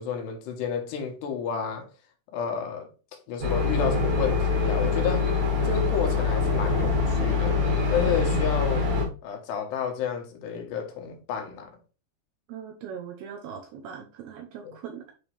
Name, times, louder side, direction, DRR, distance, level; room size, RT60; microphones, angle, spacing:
voice 1, 0.0-1.9 2.3-2.9 3.3-5.3 5.6-7.6 7.9-8.9 9.2-11.7 14.6-14.7, left 7 dB, 75° left, 3.1 m, -31 dB
sound 1, 3.4-9.1, left 4 dB, 45° right, 2.2 m, -24 dB
voice 2, 12.5-15.0, right 7 dB, 80° right, 2.4 m, -40 dB
8.7 x 3.5 x 3.3 m
omnidirectional pair, 5.2 m